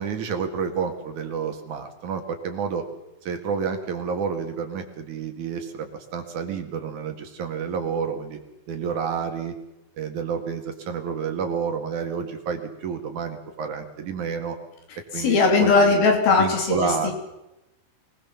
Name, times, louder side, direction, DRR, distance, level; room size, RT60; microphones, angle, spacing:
voice 1, 0.0-2.9 3.2-8.4 8.7-9.5 10.0-14.6 15.1-15.9 16.4-17.1, right 6 dB, 60° right, 6 dB, 3.2 m, -29 dB
voice 2, 15.1-17.1, left 4 dB, 80° left, 4 dB, 5.0 m, -19 dB
23.5 x 20.0 x 7.2 m, 0.93 s
omnidirectional pair, 4.2 m